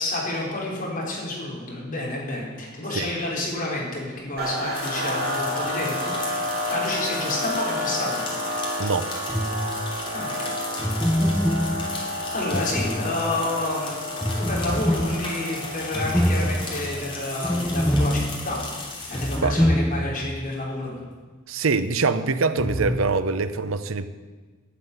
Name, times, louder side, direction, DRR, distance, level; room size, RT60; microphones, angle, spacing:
voice 1, 0.0-8.2 10.1-10.5 12.3-14.0 14.4-18.6 19.1-20.9, left 2 dB, 40° left, -4 dB, 4.4 m, -29 dB
sound 1, 4.4-17.8, left 1 dB, 50° right, 3.1 m, -31 dB
sound 2, 4.7-19.4, left 2 dB, 25° left, 2.8 m, -36 dB
voice 2, 8.8-9.1 19.4-19.6 21.5-24.1, right 4 dB, 80° right, 12 dB, 0.7 m, -24 dB
sound 3, 9.3-10.0 10.8-13.5 14.2-20.4 20.7-20.8 22.6-23.0, equal, 5° left, 0.5 m, -25 dB
11.5 x 7.6 x 9.5 m, 1.4 s
head